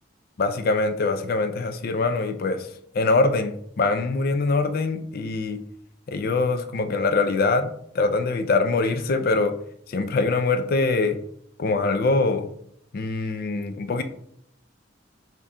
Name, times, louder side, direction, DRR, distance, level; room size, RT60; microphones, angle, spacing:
voice 1, 0.4-2.7 2.9-5.6 6.1-9.6 9.9-11.2 11.6-12.5 12.9-14.0, left 3 dB, 50° left, 7 dB, 0.4 m, -23 dB
5.6 x 2.3 x 3.6 m, 0.68 s
head